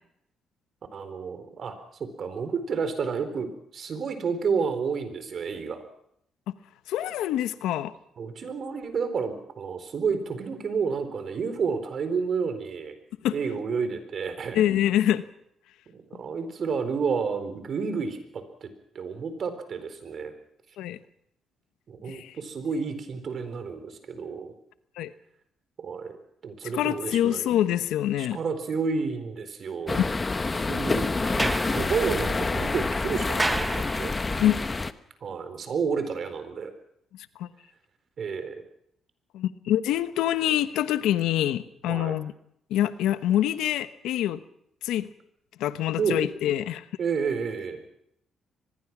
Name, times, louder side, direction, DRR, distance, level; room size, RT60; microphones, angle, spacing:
voice 1, 0.9-1.7 2.2-5.8 8.2-13.0 13.3-14.6 15.9-18.7 18.9-20.3 21.9-24.5 25.8-26.2 26.4-27.5 28.2-30.0 30.5-34.4 35.2-36.7 38.2-38.6 41.9-42.1 46.0-46.3 47.0-47.8, right 5 dB, 55° right, 9 dB, 4.2 m, -30 dB
voice 2, 6.9-7.9 13.2-13.3 14.5-15.2 20.8-21.0 22.1-22.3 25.0-25.1 26.7-28.4 34.4-34.6 37.4-37.5 39.3-42.3 42.7-44.4 44.8-45.1 45.6-46.8, left 12 dB, 90° left, 12 dB, 1.0 m, -25 dB
sound 1, 29.9-34.9, left 3 dB, 25° left, 1.0 m, -27 dB
Sliding door, 31.2-34.5, right 2 dB, 15° right, 1.1 m, -33 dB
24.0 x 21.0 x 6.1 m, 0.75 s
cardioid pair, 90°, 0 cm